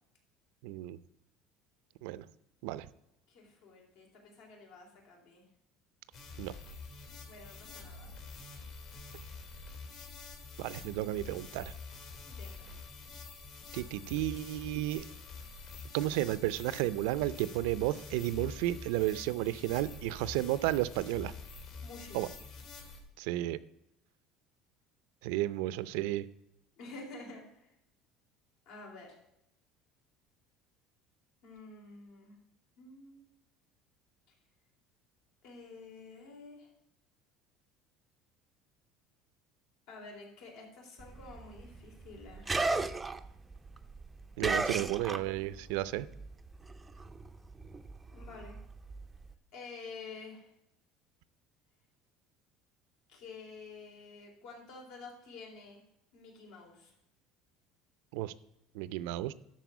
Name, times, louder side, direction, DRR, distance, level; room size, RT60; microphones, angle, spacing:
voice 1, 0.6-1.0 2.0-2.2 2.6-2.9 6.4-6.5 10.6-11.7 13.7-15.0 15.9-21.3 22.1-22.3 23.2-23.6 25.2-26.3 44.4-46.1 58.1-58.3 58.7-59.3, right 15 dB, 85° right, 16 dB, 0.5 m, -32 dB
voice 2, 3.3-5.5 7.3-8.1 12.3-12.7 21.8-22.2 26.8-27.7 28.7-29.2 31.4-32.4 32.8-33.3 34.3-34.4 35.4-36.7 39.9-42.6 44.7-45.3 48.1-48.6 49.5-50.5 53.1-55.8 56.1-56.9, left 3 dB, 70° left, 0 dB, 3.9 m, -50 dB
sound 1, 6.1-23.0, left 4 dB, 55° left, 3.1 m, -47 dB
sound 2, 41.0-45.7 46.0-49.3, right 3 dB, 10° right, 0.5 m, -36 dB
12.0 x 4.3 x 8.2 m, 0.84 s
cardioid pair, 160°, 0 cm